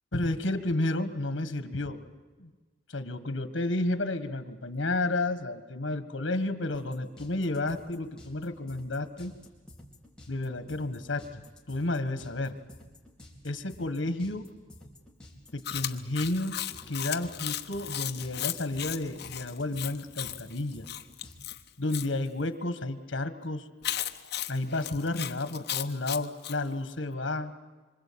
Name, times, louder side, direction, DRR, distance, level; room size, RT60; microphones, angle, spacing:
voice 1, 0.1-2.0 2.4-2.5 2.9-9.3 10.3-12.5 13.4-14.5 15.5-16.6 16.9-20.9 21.8-23.6 24.5-27.5, left 2 dB, 85° left, 11 dB, 1.6 m, -31 dB
sound 1, 6.7-21.5, left 1 dB, 5° left, 4.4 m, -51 dB
Chewing mastication, 15.6-22.1 23.8-26.6, left 12 dB, 60° left, 1.1 m, -36 dB
26.5 x 25.5 x 8.7 m, 1.3 s
head